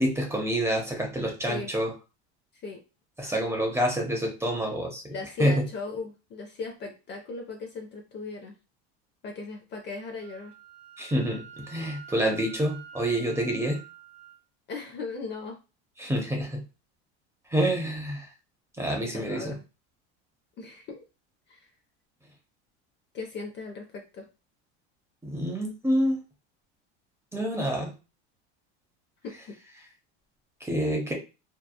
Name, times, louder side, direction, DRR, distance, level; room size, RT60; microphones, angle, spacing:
voice 1, 0.0-1.9 3.2-5.1 5.4-5.6 11.0-13.8 16.0-16.6 17.5-18.3 18.8-19.6 25.2-26.2 27.3-27.9 30.6-31.1, equal, 10° right, 1 dB, 0.7 m, -27 dB
voice 2, 5.1-8.6 9.2-10.5 14.7-15.6 18.8-19.6 20.6-21.0 21.5-21.7 23.1-24.3 29.2-29.6, left 4 dB, 35° left, 2 dB, 0.5 m, -38 dB
Wind instrument woodwind instrument, 10.2-14.4, right 8 dB, 60° right, 1.1 m, -48 dB
2.9 x 2.2 x 2.2 m, 0.30 s
supercardioid pair, 120°, 33 cm